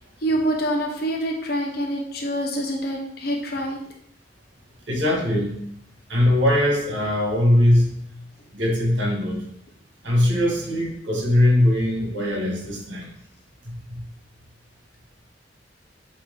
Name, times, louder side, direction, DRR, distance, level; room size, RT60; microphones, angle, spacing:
voice 1, 0.2-3.8, right 1 dB, 55° left, 1 dB, 1.1 m, -26 dB
voice 2, 4.9-5.6 6.1-7.9 8.5-9.4 10.0-13.1 13.7-14.0, left 1 dB, 75° right, -1 dB, 1.9 m, -21 dB
8.4 x 3.1 x 3.8 m, 0.69 s
head